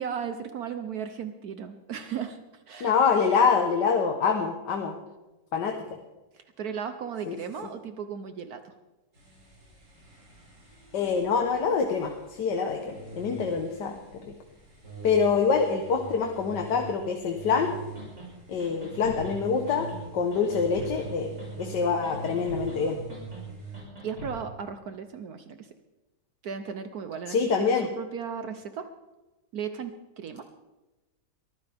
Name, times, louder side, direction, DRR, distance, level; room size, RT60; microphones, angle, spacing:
voice 1, 0.0-2.9 6.3-8.7 24.0-25.7 26.4-28.9 29.5-30.5, right 7 dB, 65° right, 9 dB, 1.3 m, -36 dB
voice 2, 2.8-5.0 5.5-6.0 7.3-7.4 10.9-14.3 15.0-17.7 18.5-19.9 20.1-23.0 27.3-27.9, left 5 dB, 80° left, 3 dB, 1.8 m, -25 dB
sound 1, 9.1-23.8, right 2 dB, 80° right, 6.4 m, -44 dB
sound 2, 17.5-17.6 17.9-18.3 18.6-19.3 19.7-20.0 20.3-21.1 21.4-21.8 22.0-22.8 23.1-23.4 23.7-24.4, equal, 45° right, 6.6 m, -43 dB
22.5 x 14.5 x 3.5 m, 1.1 s
omnidirectional pair, 1.8 m